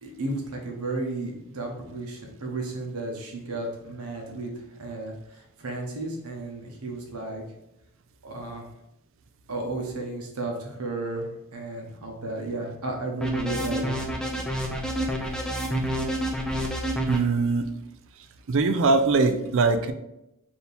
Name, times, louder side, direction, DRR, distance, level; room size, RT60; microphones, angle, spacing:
voice 1, 0.0-7.4 8.2-8.6 9.5-14.0, right 2 dB, 85° right, 1 dB, 0.9 m, -33 dB
sound 1, 13.2-17.2, right 1 dB, 5° left, 0.5 m, -28 dB
voice 2, 17.1-17.7 18.5-19.9, right 3 dB, 60° right, 9 dB, 0.4 m, -21 dB
4.3 x 2.8 x 3.4 m, 0.86 s
head